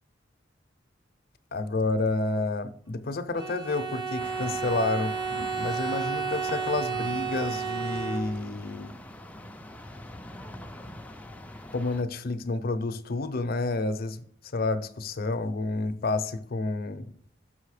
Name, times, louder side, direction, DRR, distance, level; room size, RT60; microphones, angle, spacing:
voice 1, 1.5-9.0 11.7-14.2 14.5-17.1, left 3 dB, 55° left, 9 dB, 0.6 m, -30 dB
Bowed string instrument, 3.4-8.6, right 6 dB, 25° right, 0.9 m, -32 dB
sound 1, 4.2-12.0, left 1 dB, 10° left, 0.4 m, -44 dB
6.2 x 5.6 x 4.8 m, 0.63 s
head